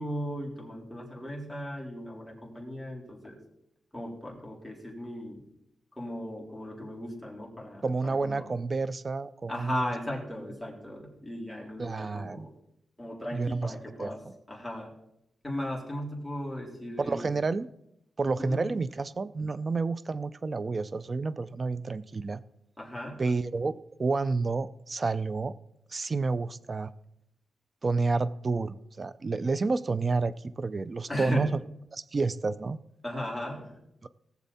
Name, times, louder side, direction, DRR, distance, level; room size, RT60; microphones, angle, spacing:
voice 1, 0.0-3.4 3.9-5.4 6.0-8.5 9.5-12.5 13.0-14.2 14.5-14.9 15.4-17.4 18.4-18.7 22.8-23.2 31.1-31.6 33.0-33.8, equal, 5° left, -3 dB, 3.8 m, -37 dB
voice 2, 7.8-9.9 11.8-12.5 13.3-13.7 14.0-14.3 17.0-17.7 18.2-22.4 23.2-23.7 24.0-25.5 25.9-26.9 27.8-31.5 31.9-32.8 34.0-34.1, right 3 dB, 40° right, 16 dB, 0.5 m, -30 dB
18.5 x 7.2 x 4.2 m, 0.81 s
cardioid pair, 85°, 0 cm